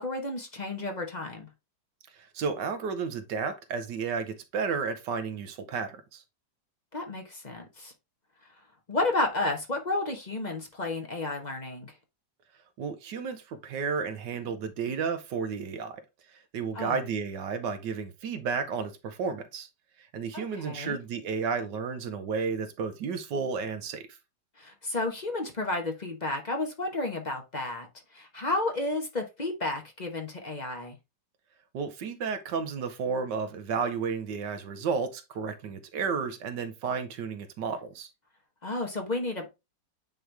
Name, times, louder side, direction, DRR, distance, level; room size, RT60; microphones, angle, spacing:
voice 1, 0.0-1.5 6.9-7.9 8.9-11.9 16.7-17.0 20.3-21.0 24.6-31.0 38.6-39.5, left 2 dB, 30° left, 1.0 m, -32 dB
voice 2, 2.1-6.2 12.8-16.0 16.3-19.7 20.0-24.1 31.7-38.1, right 5 dB, 70° right, 1.5 m, -32 dB
9.1 x 3.2 x 3.3 m
omnidirectional pair, 2.0 m